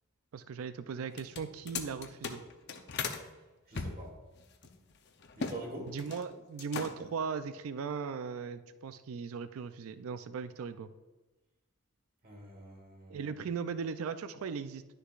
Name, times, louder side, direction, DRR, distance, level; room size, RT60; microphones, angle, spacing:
voice 1, 0.3-2.4 5.9-10.9 13.1-14.9, right 5 dB, 75° right, 12 dB, 0.4 m, -38 dB
sound 1, 1.1-3.2 3.7-5.6 5.9-6.3 6.6-7.2, left 5 dB, 50° left, 0.6 m, -39 dB
voice 2, 3.7-4.2 5.3-5.9 12.2-13.4, right 1 dB, 40° right, 0 dB, 1.6 m, -45 dB
11.0 x 6.7 x 2.4 m, 1.2 s
head